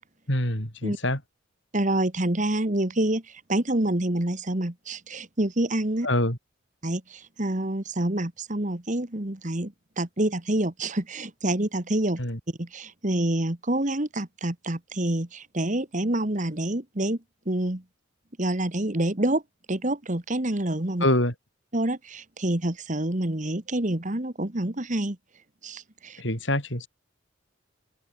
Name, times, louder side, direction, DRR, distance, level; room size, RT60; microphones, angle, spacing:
voice 1, 0.3-1.2 6.0-6.4 12.2-12.4 21.0-21.3 26.2-26.9, left 1 dB, 60° left, 7.6 m, -25 dB
voice 2, 1.7-6.1 6.8-12.2 12.5-17.2 17.4-17.8 18.4-19.4 19.7-21.0 21.7-25.2 25.6-26.2, right 1 dB, 35° right, 1.7 m, -27 dB
head